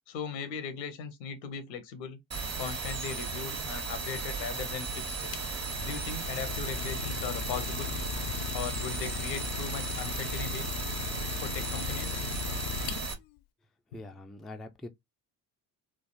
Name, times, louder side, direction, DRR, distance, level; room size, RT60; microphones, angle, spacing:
voice 1, 0.1-2.2 2.6-5.3 5.8-7.9 8.5-10.7 11.4-12.2, left 6 dB, 85° left, 0.8 m, -38 dB
sound 1, 2.3-13.1, right 4 dB, 30° right, 1.1 m, -35 dB
Idling, 5.0-13.4, left 11 dB, 55° left, 0.5 m, -38 dB
voice 2, 13.9-14.9, left 2 dB, ahead, 0.3 m, -43 dB
3.2 x 2.4 x 2.6 m
hypercardioid pair, 50°, 49 cm